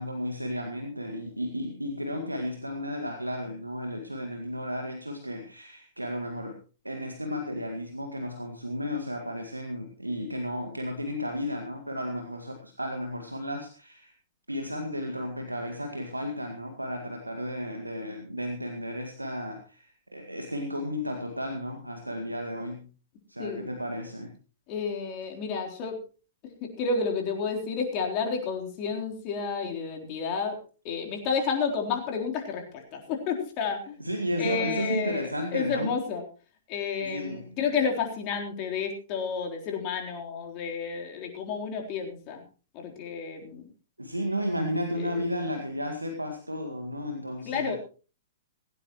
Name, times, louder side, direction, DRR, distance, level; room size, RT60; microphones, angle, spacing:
voice 1, 0.0-6.6 6.8-14.1 14.5-22.9 23.3-24.3 34.0-35.9 37.0-37.6 44.0-47.7, equal, 90° right, 3 dB, 2.0 m, -33 dB
voice 2, 24.7-26.0 26.6-30.6 30.8-34.0 34.4-36.2 36.7-42.4 42.7-43.7 45.0-45.2 47.4-47.8, left 5 dB, 35° left, 1 dB, 3.9 m, -31 dB
17.5 x 17.0 x 3.1 m, 0.36 s
figure-of-eight pair, 110°, 0 cm